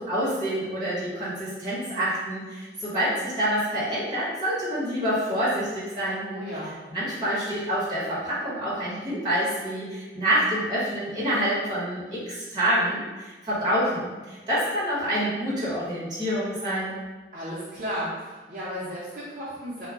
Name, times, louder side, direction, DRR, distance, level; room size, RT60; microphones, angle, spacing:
voice 1, 0.0-6.3 6.9-16.9, equal, 25° right, -10 dB, 1.0 m, -27 dB
voice 2, 6.3-6.7 17.3-19.9, equal, 50° right, -10 dB, 0.7 m, -34 dB
2.2 x 2.1 x 3.7 m, 1.2 s
head